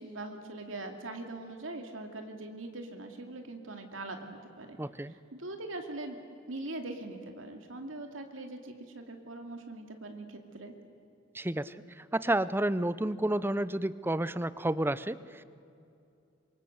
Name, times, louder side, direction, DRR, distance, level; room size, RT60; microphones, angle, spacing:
voice 1, 0.0-4.8 5.0-6.2 6.5-10.7, right 2 dB, 85° right, 4 dB, 2.6 m, -42 dB
voice 2, 4.8-5.1 11.3-15.2, right 1 dB, 10° right, 16 dB, 0.6 m, -30 dB
27.0 x 24.5 x 8.0 m, 2.7 s
head